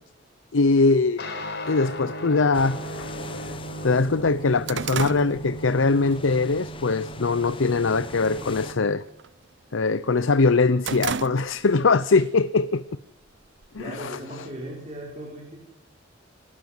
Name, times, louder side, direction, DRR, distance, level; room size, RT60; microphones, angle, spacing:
voice 1, 0.5-1.2 1.7-3.1 3.5-3.6 3.8-9.0 9.7-12.8 13.7-14.2, left 3 dB, 85° left, 15 dB, 0.7 m, -22 dB
sound 1, 1.2-9.0, right 1 dB, 60° left, 4.7 m, -37 dB
sound 2, 2.5-8.7, left 3 dB, 25° left, 0.9 m, -41 dB
sound 3, 3.4-3.5 3.8-6.2 6.6-6.9 7.3-7.8 8.1-8.4 8.7-10.0 10.3-11.8 12.2-12.3 13.2-14.1, right 6 dB, 65° right, 0.7 m, -34 dB
voice 2, 13.8-15.6, right 1 dB, 35° right, -2 dB, 5.6 m, -37 dB
28.5 x 12.5 x 7.9 m, 0.85 s
head